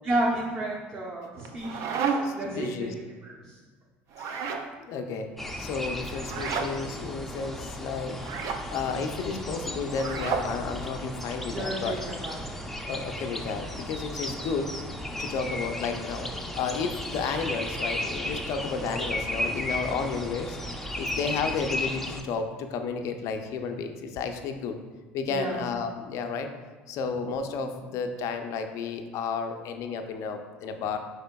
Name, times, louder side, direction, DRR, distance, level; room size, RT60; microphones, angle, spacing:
voice 1, 0.0-3.6 11.5-12.4 21.1-21.2 25.3-25.6, right 1 dB, 40° right, -4 dB, 0.8 m, -32 dB
sound 1, 1.4-2.5 4.1-4.7 6.2-6.7 8.2-8.6 9.9-10.5, right 5 dB, 60° right, 0.4 m, -30 dB
voice 2, 2.2-2.9 4.2-4.4 4.8-5.3 5.6-8.2 8.7-12.0 12.9-14.7 15.2-20.6 21.0-24.8 25.1-26.5 26.9-31.0, left 5 dB, 60° left, 6 dB, 0.4 m, -32 dB
sound 2, 5.4-22.2, left 1 dB, 5° left, 0.4 m, -35 dB
4.9 x 4.0 x 2.2 m, 1.3 s
hypercardioid pair, 70°, 6 cm